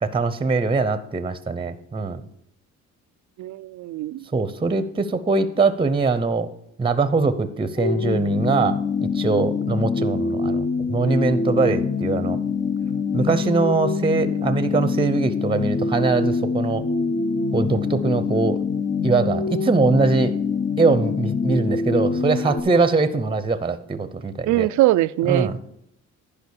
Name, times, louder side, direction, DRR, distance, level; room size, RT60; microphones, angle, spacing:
voice 1, 0.0-2.2 4.3-6.5 6.8-12.4 13.1-16.8 17.5-18.6 19.0-20.4 20.8-24.7 25.3-25.6, right 4 dB, 15° right, 12 dB, 0.8 m, -22 dB
voice 2, 3.4-4.2 24.5-25.6, right 16 dB, 70° right, 16 dB, 0.5 m, -21 dB
sound 1, 7.8-22.6, left 4 dB, 40° left, 0.9 m, -25 dB
11.0 x 5.1 x 6.5 m, 0.76 s
cardioid pair, 90°, 30 cm